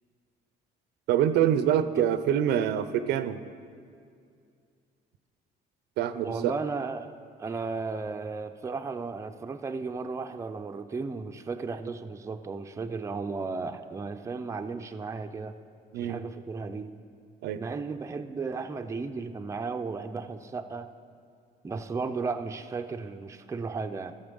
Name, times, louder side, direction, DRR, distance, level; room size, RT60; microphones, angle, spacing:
voice 1, 1.1-3.4 6.0-6.5 15.9-16.2 17.4-17.6, right 10 dB, 80° right, 12 dB, 0.5 m, -25 dB
voice 2, 6.2-7.1 7.4-15.6 16.0-16.9 17.6-20.9 21.6-24.1, right 4 dB, 15° right, 7 dB, 0.4 m, -34 dB
13.5 x 6.6 x 5.3 m, 2.3 s
cardioid pair, 110°, 17 cm